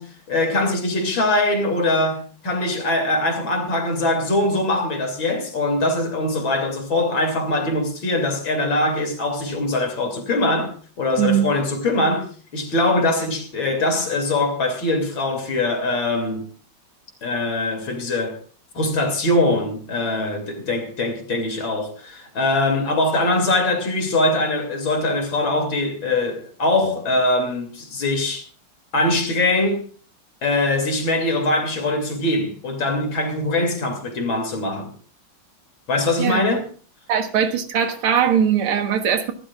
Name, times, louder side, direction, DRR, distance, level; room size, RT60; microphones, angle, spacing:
voice 1, 0.0-12.3 12.5-16.5 17.2-18.4 18.8-28.5 28.9-29.9 30.4-34.9 35.9-36.7, left 2 dB, 65° left, 3.5 m, -22 dB
voice 2, 37.1-39.3, right 8 dB, 85° right, 2.3 m, -20 dB
24.5 x 12.0 x 2.4 m
omnidirectional pair, 2.3 m